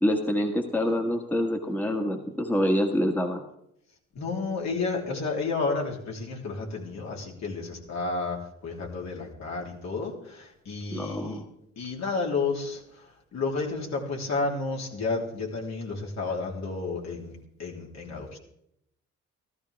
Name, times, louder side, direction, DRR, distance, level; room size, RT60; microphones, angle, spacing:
voice 1, 0.0-3.4 10.9-11.5, equal, 5° left, 3 dB, 1.6 m, -26 dB
voice 2, 4.1-8.4 8.6-11.4 11.8-18.4, left 3 dB, 65° left, -1 dB, 3.3 m, -31 dB
14.5 x 14.0 x 3.5 m, 0.75 s
cardioid pair, 90°, 30 cm